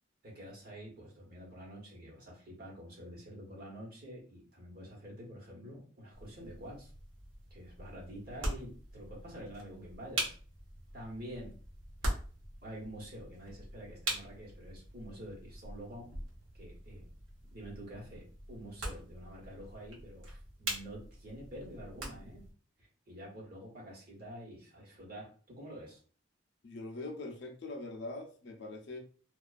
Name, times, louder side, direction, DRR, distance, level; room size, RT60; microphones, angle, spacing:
voice 1, 0.2-6.9 7.5-10.3 10.9-11.5 12.0-12.1 12.6-16.1 16.6-17.0 17.5-22.5 23.1-26.0, equal, 50° right, -3 dB, 1.0 m, -47 dB
sound 1, 6.1-22.5, right 1 dB, 75° right, 0.8 m, -43 dB
voice 2, 26.6-29.0, left 2 dB, 60° left, 4 dB, 0.4 m, -42 dB
2.3 x 2.2 x 2.4 m, 0.41 s
head